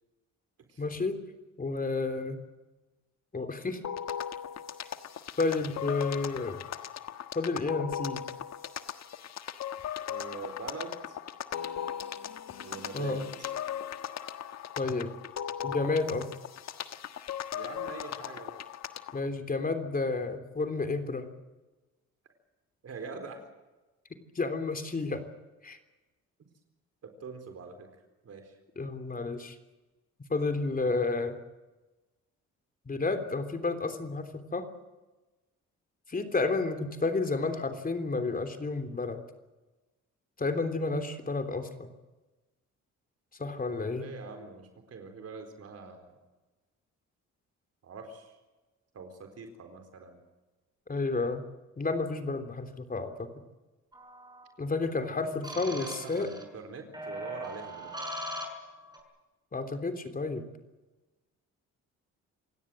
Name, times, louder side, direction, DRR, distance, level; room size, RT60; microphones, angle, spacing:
voice 1, 0.8-1.2 1.6-2.4 3.3-3.8 5.4-6.6 7.4-8.3 12.9-13.3 14.8-15.1 15.6-16.3 19.1-21.3 24.1-25.2 25.6-25.8 28.8-29.6 30.3-31.4 32.9-34.7 36.1-39.2 40.4-41.9 43.4-44.1 50.9-51.5 51.8-53.3 54.6-56.3 59.5-60.5, left 3 dB, 30° left, 7 dB, 3.4 m, -31 dB
sound 1, 3.8-19.2, left 9 dB, 60° left, 1.5 m, -38 dB
voice 2, 10.1-11.2 12.6-13.5 17.5-18.6 22.8-23.4 27.0-27.9 28.2-28.6 44.0-46.2 47.8-48.3 48.9-50.2 55.5-58.0, right 4 dB, 55° right, 5 dB, 4.3 m, -43 dB
sound 2, 53.9-54.4 55.4-56.4 56.9-59.0, equal, 15° right, 6.6 m, -40 dB
28.0 x 17.0 x 7.8 m, 1.1 s
cardioid pair, 90°, 30 cm